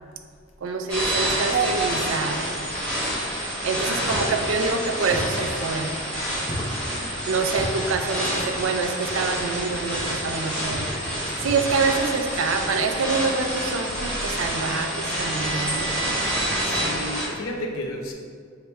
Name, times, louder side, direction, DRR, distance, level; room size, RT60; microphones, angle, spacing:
voice 1, 0.6-2.5 3.6-5.9 7.3-10.9 11.4-15.9, right 4 dB, 70° right, 5 dB, 0.4 m, -26 dB
sound 1, 0.9-17.2, equal, 5° left, 1.3 m, -28 dB
voice 2, 3.8-4.5 6.6-7.1 13.9-14.0 16.6-18.1, left 1 dB, 80° left, 1 dB, 0.5 m, -34 dB
sound 2, 4.1-4.3 5.1-5.4 6.5-6.8 7.6-7.8 9.0-9.3 9.9-10.2 10.7-11.0 11.4-11.7, equal, 35° left, 0.8 m, -33 dB
3.3 x 2.7 x 4.4 m, 2.1 s
head